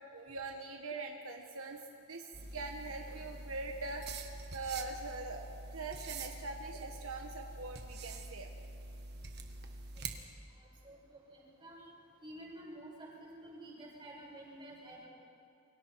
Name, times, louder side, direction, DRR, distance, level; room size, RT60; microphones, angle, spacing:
voice 1, 0.1-1.8 2.1-4.0 4.5-8.5, right 3 dB, 75° right, 3 dB, 1.3 m, -42 dB
sound 1, 2.3-10.2, right 3 dB, 50° right, 1.5 m, -46 dB
voice 2, 11.3-11.8 12.2-15.1, right 1 dB, 25° right, -4 dB, 7.0 m, -50 dB
28.0 x 24.0 x 4.7 m, 2.6 s
head